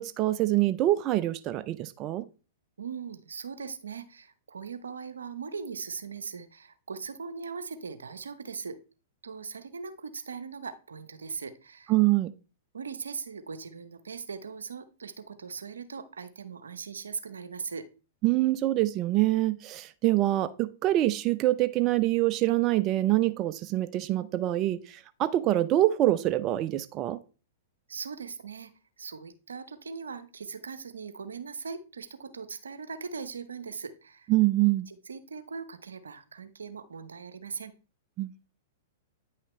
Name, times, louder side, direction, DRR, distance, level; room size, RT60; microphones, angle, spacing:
voice 1, 0.0-2.3 11.9-12.3 18.2-27.2 34.3-34.9 38.2-38.3, right 15 dB, 35° right, 13 dB, 0.5 m, -25 dB
voice 2, 2.8-8.8 9.2-11.9 12.7-17.8 27.9-28.7 29.0-34.3 34.9-37.7, right 5 dB, 80° right, 12 dB, 0.8 m, -40 dB
9.3 x 5.7 x 3.2 m, 0.34 s
figure-of-eight pair, 105°, 0 cm